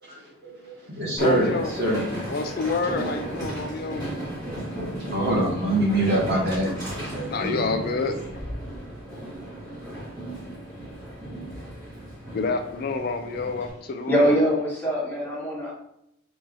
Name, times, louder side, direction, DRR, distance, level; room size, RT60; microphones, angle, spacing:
voice 1, 0.0-2.0 2.6-2.7 4.8-6.7 7.1-7.8, right 1 dB, 55° right, -5 dB, 1.7 m, -25 dB
voice 2, 1.1-1.8 2.3-4.1 7.3-8.2 12.3-14.4, left 4 dB, 50° left, 6 dB, 0.3 m, -28 dB
Train, 1.2-13.7, right 1 dB, 20° right, 1.5 m, -35 dB
voice 3, 14.1-15.7, equal, 10° left, -6 dB, 1.2 m, -23 dB
6.1 x 3.1 x 2.6 m, 0.79 s
head